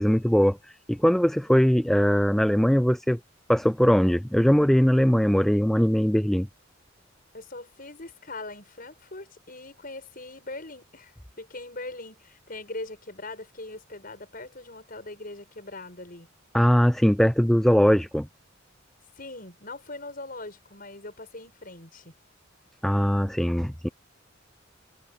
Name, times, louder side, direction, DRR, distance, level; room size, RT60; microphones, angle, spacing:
voice 1, 0.0-3.2 3.5-6.5 16.5-18.3 22.8-23.9, equal, ahead, 0.4 m, -21 dB
voice 2, 7.3-16.3 19.2-22.1, left 2 dB, 45° left, 7.3 m, -41 dB
head